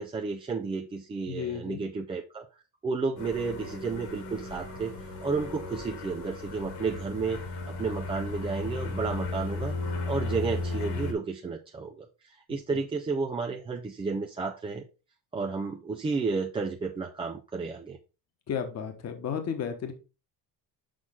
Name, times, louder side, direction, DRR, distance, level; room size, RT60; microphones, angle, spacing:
voice 1, 0.0-2.5 2.8-7.4 7.7-9.7 10.1-14.8 15.3-18.0, right 4 dB, 15° right, 2 dB, 0.3 m, -32 dB
voice 2, 1.3-1.8 12.5-12.8 18.5-19.9, left 7 dB, 40° left, 6 dB, 1.2 m, -33 dB
sound 1, 3.2-11.1, left 3 dB, 65° left, 2.2 m, -35 dB
6.4 x 5.8 x 3.7 m, 0.31 s
cardioid pair, 155°, 41 cm